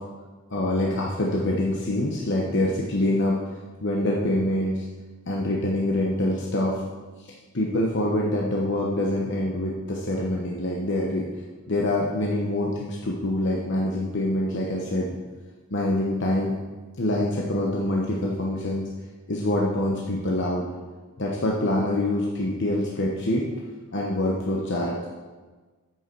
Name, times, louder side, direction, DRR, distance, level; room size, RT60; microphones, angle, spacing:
voice 1, 0.5-3.4 3.8-4.8 5.3-6.7 7.5-11.2 11.7-15.1 15.7-16.5 17.0-18.8 19.3-20.6 21.2-23.4 23.9-25.0, left 1 dB, 50° left, -2 dB, 1.1 m, -25 dB
9.7 x 7.8 x 4.7 m, 1.3 s
head